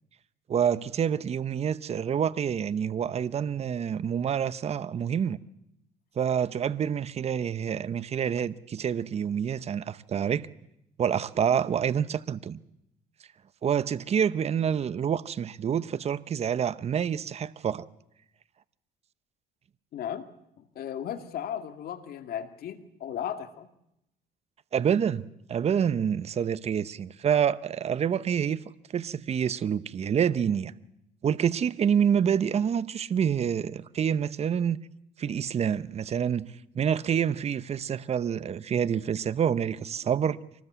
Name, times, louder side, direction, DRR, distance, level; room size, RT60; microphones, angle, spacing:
voice 1, 0.5-5.4 6.2-10.5 11.0-12.6 13.6-17.8 24.7-25.2 25.5-28.6 28.9-30.7 31.2-34.8 35.2-40.4, right 8 dB, 40° right, 0.8 m, -27 dB
voice 2, 19.9-20.3 20.6-23.7, left 9 dB, 65° left, 2.3 m, -36 dB
24.5 x 19.5 x 8.2 m
cardioid pair, 110°, 17 cm